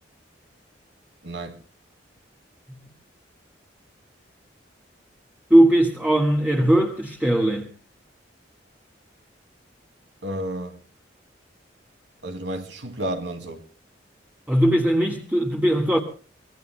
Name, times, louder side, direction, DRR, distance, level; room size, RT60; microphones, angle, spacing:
voice 1, 1.2-1.6 10.2-10.8 12.2-13.6, right 1 dB, 80° right, 2.5 m, -31 dB
voice 2, 5.5-7.7 14.5-16.0, right 1 dB, 10° right, 1.7 m, -19 dB
25.0 x 21.5 x 2.3 m
head